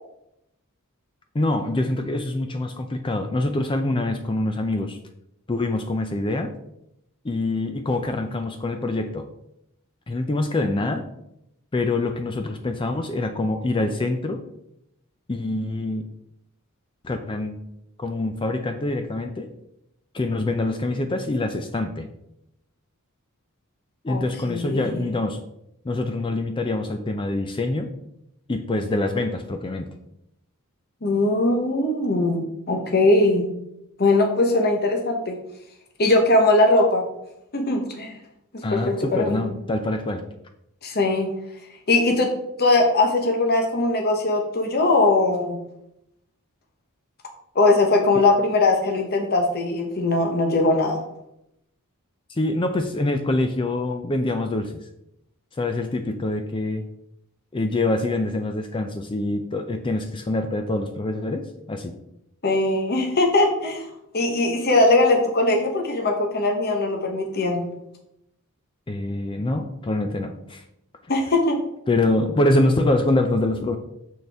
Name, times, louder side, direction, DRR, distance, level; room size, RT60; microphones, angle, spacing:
voice 1, 1.3-5.0 5.5-6.5 7.2-9.3 10.1-11.0 11.7-14.4 15.3-16.0 17.0-17.6 18.0-19.5 20.1-22.1 24.0-25.4 25.8-27.9 28.5-29.9 38.6-40.2 52.3-54.9 55.5-56.9 57.5-61.9 68.9-70.6 71.9-73.8, left 2 dB, 25° left, 7 dB, 0.4 m, -25 dB
voice 2, 24.1-25.1 31.0-33.5 34.0-35.4 36.0-37.0 37.5-38.1 38.7-39.4 40.8-41.3 41.9-42.3 42.6-45.6 47.5-51.0 62.4-63.9 64.1-67.6 71.1-71.6, left 2 dB, 45° left, 3 dB, 1.0 m, -20 dB
6.6 x 6.5 x 3.5 m, 0.80 s
head